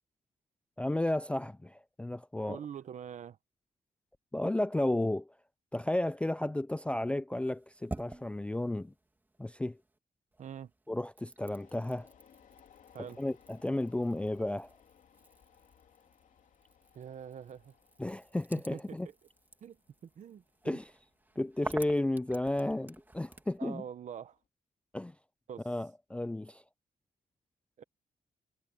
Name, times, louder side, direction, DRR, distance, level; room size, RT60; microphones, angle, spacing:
voice 1, 0.8-2.6 4.3-5.3 5.7-8.9 9.4-9.8 10.9-12.1 13.2-14.7 18.0-19.1 20.7-20.8 21.4-23.8 24.9-25.1 25.7-26.6, left 1 dB, 10° left, 0.4 m, -33 dB
voice 2, 2.5-3.4 10.4-10.7 12.9-13.2 16.9-17.7 18.7-18.8 19.6-20.8 23.6-24.4 25.5-25.7 27.8-27.9, right 8 dB, 60° right, 1.2 m, -44 dB
sound 1, 7.3-10.0 10.3-23.6, right 2 dB, 15° right, 2.5 m, -50 dB
sound 2, 11.4-24.5, left 8 dB, 65° left, 3.3 m, -64 dB
cardioid pair, 135°, 14 cm